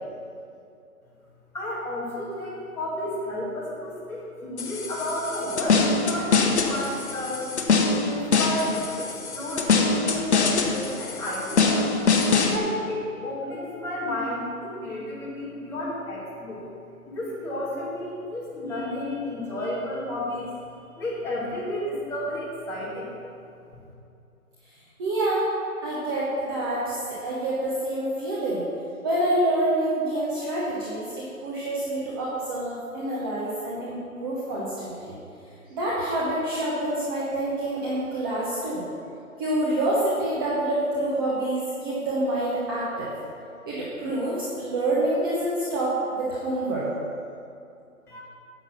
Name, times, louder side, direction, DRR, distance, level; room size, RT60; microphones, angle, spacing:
voice 1, 1.5-7.6 8.0-11.8 12.4-16.6 17.1-20.5 21.0-23.1 48.1-48.2, left 1 dB, 5° left, -8 dB, 1.9 m, -32 dB
sound 1, 4.6-12.6, left 4 dB, 50° left, 1.2 m, -24 dB
voice 2, 25.0-25.5 25.8-28.6 29.0-35.2 35.7-38.8 39.4-43.1 43.6-46.9, right 1 dB, 15° right, -8 dB, 1.0 m, -27 dB
10.0 x 8.3 x 5.8 m, 2.6 s
figure-of-eight pair, 150°, 44 cm